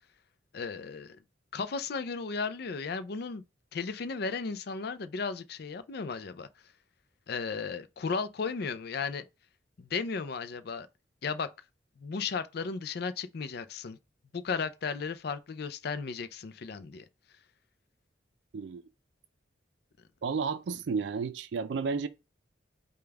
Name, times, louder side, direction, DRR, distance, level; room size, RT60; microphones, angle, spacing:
voice 1, 0.5-1.2 1.5-3.4 3.7-6.5 7.3-9.2 9.8-10.9 11.2-11.5 12.0-14.0 14.3-17.0, left 5 dB, 60° left, 0.4 m, -35 dB
voice 2, 20.2-22.1, right 5 dB, 75° right, 0.4 m, -32 dB
5.1 x 2.3 x 3.4 m
head